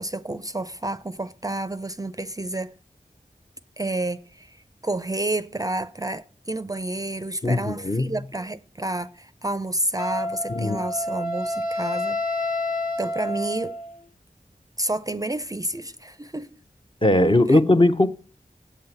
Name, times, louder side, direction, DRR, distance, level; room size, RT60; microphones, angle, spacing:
voice 1, 0.0-2.7 3.8-4.6 4.8-12.4 13.0-13.8 14.8-16.6 17.5-17.6, right 2 dB, 25° right, 0.4 m, -30 dB
voice 2, 7.4-8.2 10.5-10.8 17.0-18.1, left 1 dB, 30° left, 0.7 m, -19 dB
Wind instrument woodwind instrument, 10.0-13.9, left 1 dB, 60° left, 1.3 m, -28 dB
8.3 x 5.6 x 7.8 m
wide cardioid pair, 50°, 16 cm